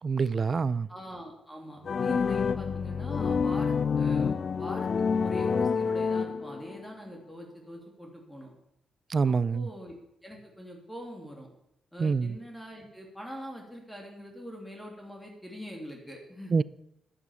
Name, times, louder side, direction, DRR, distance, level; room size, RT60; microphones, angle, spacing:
voice 1, 0.0-0.9 9.1-9.7 12.0-12.4 16.5-16.6, right 5 dB, 45° right, 0.4 m, -26 dB
voice 2, 0.9-8.5 9.2-9.9 10.2-11.5 11.9-16.6, equal, 5° left, 2.8 m, -43 dB
sound 1, 1.8-6.8, left 5 dB, 50° left, 0.4 m, -28 dB
11.0 x 7.1 x 7.0 m
supercardioid pair, 65°, 0 cm